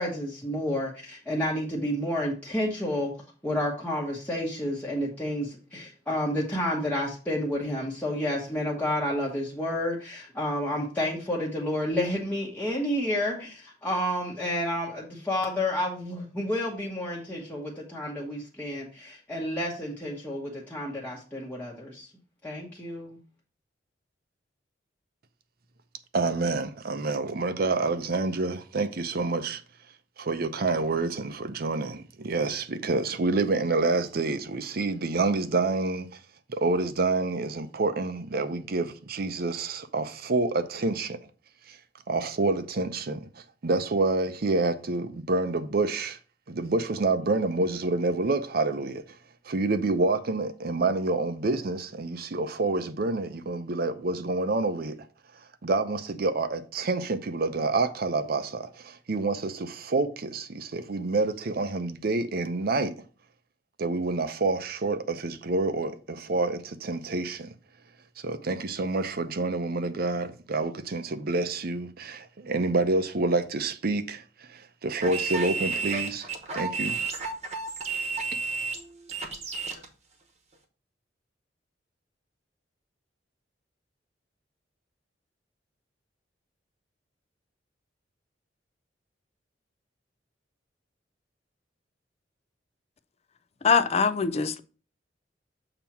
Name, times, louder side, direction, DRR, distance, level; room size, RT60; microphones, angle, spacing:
voice 1, 0.0-3.1 3.4-22.1 22.4-23.2, left 1 dB, 10° left, 1.0 m, -30 dB
voice 2, 26.1-29.6 30.2-36.1 36.5-41.2 41.7-41.8 42.1-46.2 46.5-49.0 49.4-55.0 55.6-62.9 63.8-67.5 68.2-76.3 76.5-77.0, right 3 dB, 55° right, 0.6 m, -28 dB
sound 1, 75.0-79.8, right 4 dB, 35° right, 1.1 m, -32 dB
voice 3, 93.6-94.6, left 5 dB, 35° left, 0.4 m, -23 dB
7.0 x 3.0 x 5.7 m
head